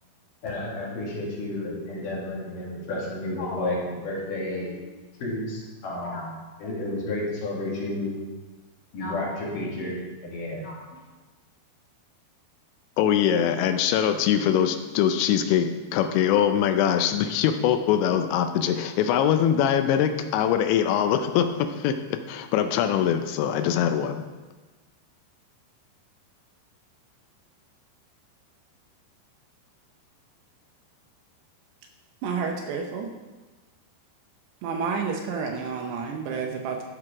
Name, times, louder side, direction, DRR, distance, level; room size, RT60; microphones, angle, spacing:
voice 1, 0.4-4.8 5.2-6.3 6.6-8.1 8.9-10.0 10.2-11.0, left 2 dB, 55° left, -5 dB, 3.4 m, -31 dB
voice 2, 13.0-24.2, left 9 dB, 85° left, 7 dB, 2.8 m, -23 dB
voice 3, 32.2-33.1 34.6-36.8, right 5 dB, 75° right, 3 dB, 2.7 m, -30 dB
12.0 x 6.5 x 4.9 m, 1.2 s
omnidirectional pair, 5.3 m